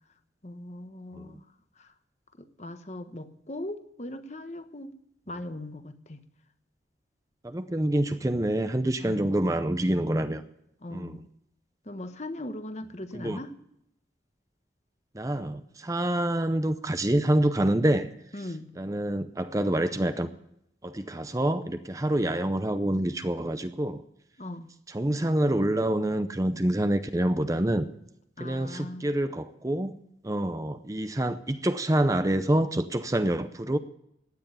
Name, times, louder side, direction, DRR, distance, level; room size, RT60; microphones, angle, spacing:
voice 1, 0.4-1.4 1.8-1.9 2.4-4.9 5.3-6.2 9.0-9.3 10.8-11.2 11.8-13.5 18.3-18.7 24.4-24.7 28.4-29.1, left 1 dB, 40° left, 9 dB, 1.1 m, -39 dB
voice 2, 7.4-10.4 10.9-11.2 13.1-13.4 15.1-18.1 18.8-20.3 20.8-24.0 24.9-27.9 28.4-30.0 30.2-33.8, right 1 dB, 20° right, 10 dB, 0.6 m, -27 dB
16.0 x 10.5 x 6.9 m, 0.77 s
head